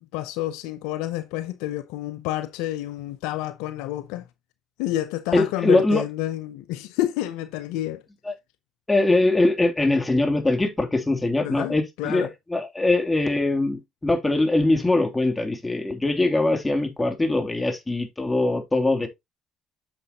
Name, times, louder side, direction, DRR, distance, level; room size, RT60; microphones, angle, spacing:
voice 1, 0.1-4.2 4.8-8.0 11.4-12.3, left 14 dB, 80° left, 0.6 m, -29 dB
voice 2, 5.3-6.0 8.2-8.3 8.9-19.1, left 2 dB, 20° left, 2.9 m, -22 dB
8.9 x 6.8 x 2.9 m
hypercardioid pair, 55°, 0 cm